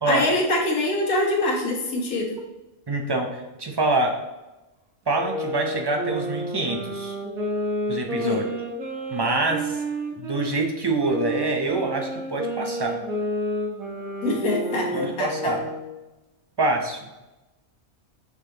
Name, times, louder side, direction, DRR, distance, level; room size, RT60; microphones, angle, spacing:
voice 1, 0.0-2.4 8.2-8.5 14.2-15.6, left 2 dB, 80° left, -1 dB, 1.7 m, -24 dB
voice 2, 2.9-4.2 5.1-7.2 7.9-8.4 9.1-9.8 10.2-13.0 14.9-15.6 16.6-17.1, right 2 dB, 25° right, 2 dB, 0.5 m, -25 dB
sound 1, 5.1-10.5 11.0-15.9, right 1 dB, 80° right, 1.7 m, -30 dB
6.6 x 5.8 x 2.9 m, 1.0 s
omnidirectional pair, 1.5 m